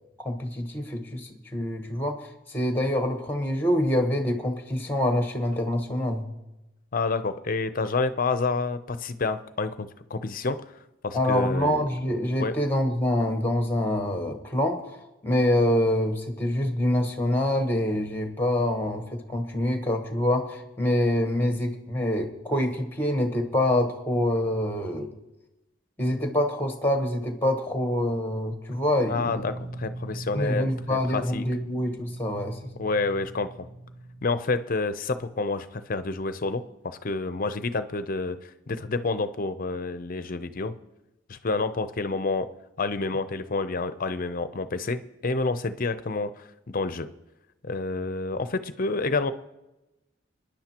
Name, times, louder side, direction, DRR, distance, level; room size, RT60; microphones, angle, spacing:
voice 1, 0.2-6.3 11.1-25.1 26.0-29.4 30.3-32.6, left 1 dB, 10° left, 5 dB, 1.2 m, -26 dB
voice 2, 6.9-10.6 11.0-11.9 12.4-12.5 29.1-31.5 32.8-33.7 34.2-40.8 41.3-42.5 42.8-47.1 47.6-49.3, left 3 dB, 45° left, 11 dB, 0.6 m, -29 dB
sound 1, 29.2-34.3, right 1 dB, 75° right, 1.1 m, -39 dB
24.5 x 10.5 x 2.9 m, 0.96 s
head